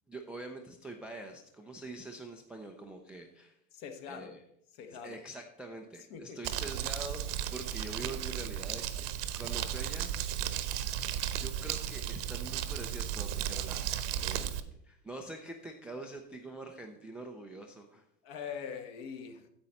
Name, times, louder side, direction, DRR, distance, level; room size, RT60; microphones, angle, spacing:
voice 1, 0.1-3.6 4.1-4.4 5.0-10.7 11.4-18.0, right 2 dB, 5° right, 0.3 m, -45 dB
voice 2, 3.7-4.4 4.7-5.2 6.1-6.4 18.2-19.5, left 7 dB, 50° left, 1.4 m, -43 dB
Crumpling crinkling, 6.4-14.6, right 10 dB, 50° right, 0.9 m, -35 dB
9.9 x 7.7 x 4.1 m
hypercardioid pair, 105°, 45 cm